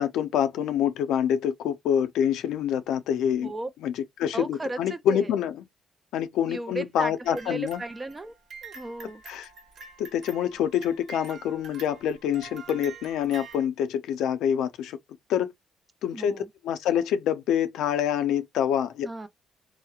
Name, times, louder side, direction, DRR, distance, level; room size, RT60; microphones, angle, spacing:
voice 1, 0.0-3.5 3.8-5.6 6.1-7.8 9.3-9.5 10.0-15.0 15.3-15.5 16.0-19.1, left 9 dB, 85° left, 0.4 m, -26 dB
voice 2, 4.3-5.3 6.5-8.4 8.6-9.2 16.1-16.5 19.0-19.3, right 2 dB, 20° right, 0.4 m, -35 dB
sound 1, 7.2-13.7, right 5 dB, 65° right, 0.8 m, -46 dB
2.8 x 2.0 x 2.3 m
cardioid pair, 90°, 0 cm